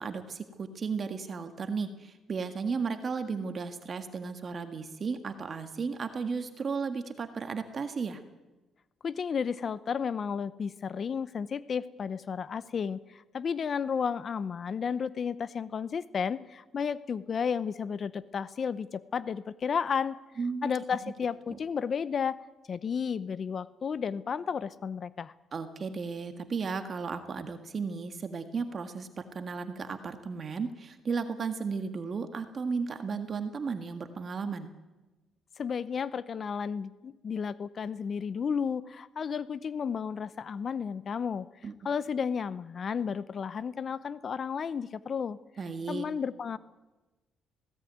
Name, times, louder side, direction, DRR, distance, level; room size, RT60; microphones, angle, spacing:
voice 1, 0.0-8.2 20.4-20.7 25.5-34.7 41.6-41.7 45.6-46.1, right 5 dB, 45° right, 8 dB, 1.8 m, -34 dB
voice 2, 9.0-20.2 20.6-22.4 22.7-25.3 35.6-41.5 41.8-45.4 45.9-46.6, left 6 dB, 50° left, 17 dB, 0.7 m, -32 dB
19.5 x 17.5 x 9.3 m, 1.1 s
cardioid pair, 90°, 0 cm